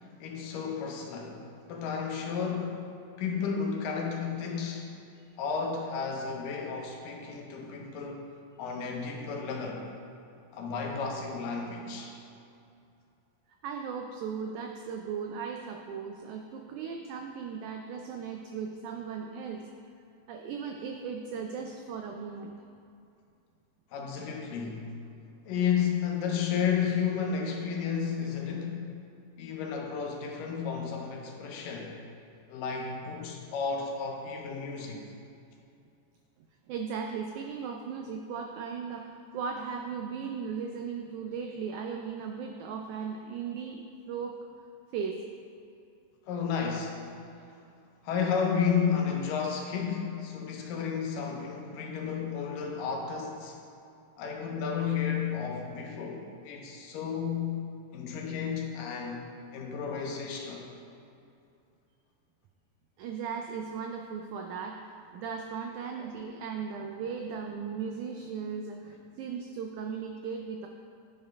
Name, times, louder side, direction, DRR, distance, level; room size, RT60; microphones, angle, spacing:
voice 1, 0.2-2.9 3.2-4.9 5.4-8.3 8.6-9.9 10.5-12.2 23.9-24.9 25.5-28.9 29.4-32.0 32.5-35.0 46.3-47.1 48.0-53.6 54.2-57.6 57.9-59.3 59.5-60.7 66.0-66.1, left 6 dB, 80° left, 1 dB, 2.5 m, -32 dB
voice 2, 13.6-19.7 20.3-22.5 36.7-44.4 44.9-45.2 63.0-70.7, right 6 dB, 90° right, 3 dB, 1.7 m, -37 dB
10.0 x 5.0 x 5.3 m, 2.6 s
omnidirectional pair, 4.0 m